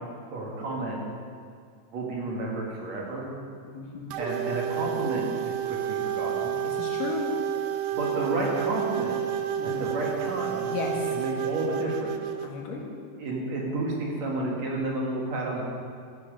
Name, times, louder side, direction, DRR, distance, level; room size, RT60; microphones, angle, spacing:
voice 1, 0.3-1.0 1.9-3.3 4.2-6.6 7.7-9.2 9.6-10.7 11.1-12.1 13.2-15.6, right 2 dB, 55° right, -2 dB, 2.9 m, -31 dB
voice 2, 3.7-4.1 6.8-7.3 9.6-9.8 10.7-11.0 12.4-12.9, left 4 dB, 75° left, -1 dB, 3.4 m, -34 dB
sound 1, 4.1-12.5, right 10 dB, 90° right, 1.5 m, -30 dB
14.0 x 10.5 x 5.2 m, 2.2 s
omnidirectional pair, 3.9 m